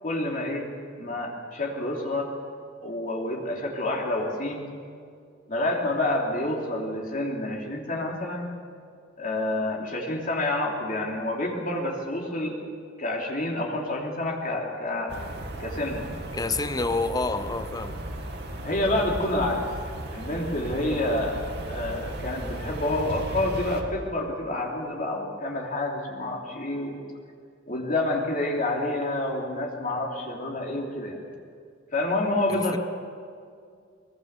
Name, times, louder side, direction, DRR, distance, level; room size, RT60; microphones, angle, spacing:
voice 1, 0.0-2.3 2.8-4.7 5.5-8.5 9.2-12.6 13.0-15.2 15.6-16.1 18.6-19.6 20.1-27.0 27.7-31.2 31.9-32.8, left 1 dB, 45° left, 3.2 m, -28 dB
sound 1, 15.1-23.8, right 1 dB, 55° right, 2.5 m, -36 dB
voice 2, 16.3-18.0 32.5-32.8, left 3 dB, 20° left, 0.7 m, -28 dB
22.5 x 22.0 x 7.2 m
head